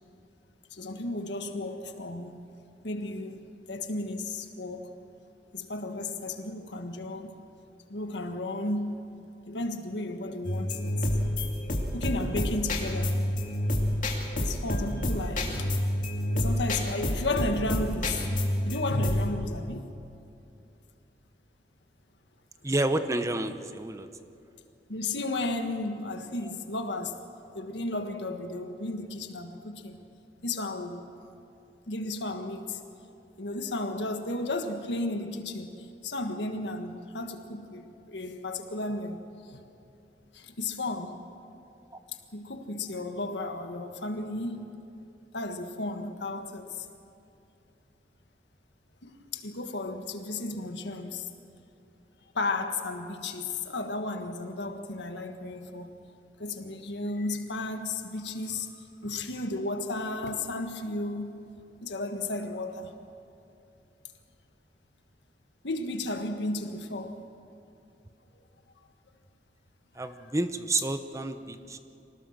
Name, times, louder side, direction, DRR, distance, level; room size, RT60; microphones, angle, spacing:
voice 1, 0.7-2.4 2.8-4.9 5.5-7.4 7.9-9.0 9.5-10.9 11.9-13.2 14.4-15.7 16.3-18.3 18.6-19.9 24.9-27.2 27.5-30.0 30.4-31.1 31.9-32.8 33.4-39.2 39.5-39.6 40.3-41.2 42.3-44.7 45.3-46.9 49.0-51.3 52.3-55.9 56.4-61.3 61.8-62.9 65.6-67.2, left 2 dB, 85° left, 1.6 m, -33 dB
sound 1, 10.4-19.3, left 1 dB, 50° left, 2.5 m, -29 dB
voice 2, 22.6-24.1 26.4-26.5 41.9-42.0 69.9-71.8, right 2 dB, 20° right, 0.8 m, -30 dB
25.5 x 18.5 x 6.6 m
head